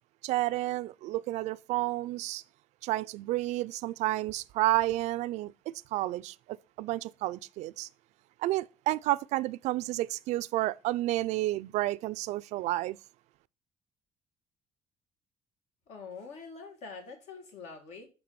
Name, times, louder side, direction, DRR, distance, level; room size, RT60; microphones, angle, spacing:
voice 1, 0.2-2.4 2.8-6.3 6.8-7.9 8.4-13.0, right 16 dB, 80° right, 0.4 m, -30 dB
voice 2, 15.9-18.1, left 4 dB, 80° left, 2.2 m, -45 dB
7.9 x 3.3 x 5.8 m
cardioid pair, 125°, 12 cm